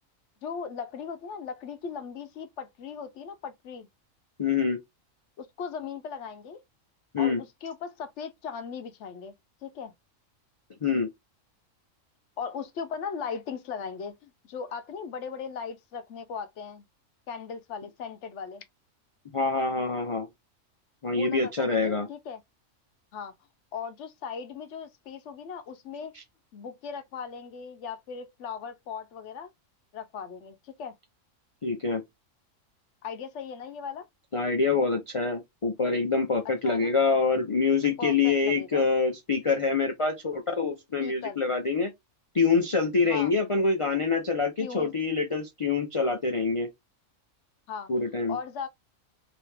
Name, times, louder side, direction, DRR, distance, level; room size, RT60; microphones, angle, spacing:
voice 1, 0.4-3.9 5.4-6.6 7.2-9.3 9.6-9.9 12.4-16.8 17.3-18.6 21.1-22.4 23.1-23.3 23.7-26.1 26.5-29.5 29.9-30.9 33.0-34.0 36.6-36.9 38.0-38.9 41.0-41.4 43.1-43.3 44.6-44.9 47.7-47.9 48.3-48.7, left 6 dB, 65° left, 0.9 m, -38 dB
voice 2, 4.4-4.8 7.1-7.4 10.8-11.1 19.3-20.3 21.0-22.1 31.6-32.0 34.3-41.9 42.3-46.7 47.9-48.4, left 4 dB, 45° left, 0.4 m, -25 dB
3.0 x 2.8 x 3.2 m
omnidirectional pair, 1.4 m